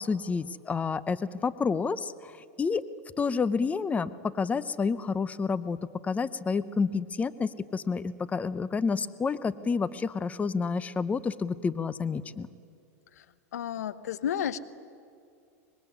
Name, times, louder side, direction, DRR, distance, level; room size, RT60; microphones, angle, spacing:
voice 1, 0.0-2.8 3.2-12.5, left 5 dB, 15° left, 16 dB, 0.8 m, -29 dB
voice 2, 13.5-14.6, left 9 dB, 80° left, 14 dB, 1.1 m, -31 dB
24.0 x 21.5 x 9.7 m, 2.4 s
hypercardioid pair, 105°, 8 cm